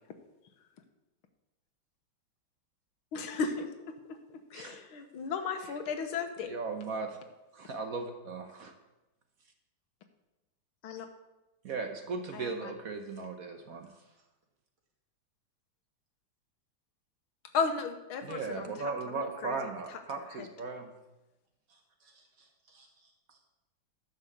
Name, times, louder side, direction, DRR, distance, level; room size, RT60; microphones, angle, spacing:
voice 1, 3.1-3.7 4.5-6.5 10.8-11.1 12.3-12.7 17.5-19.6 20.4-20.5, left 5 dB, 85° left, 7 dB, 1.9 m, -35 dB
voice 2, 6.4-7.2 7.5-8.7 11.6-13.9 18.2-20.9, right 4 dB, 55° right, 5 dB, 1.0 m, -37 dB
voice 3, 21.7-23.4, right 3 dB, 75° right, 0 dB, 2.9 m, -66 dB
10.5 x 6.8 x 6.6 m, 1.0 s
omnidirectional pair, 2.3 m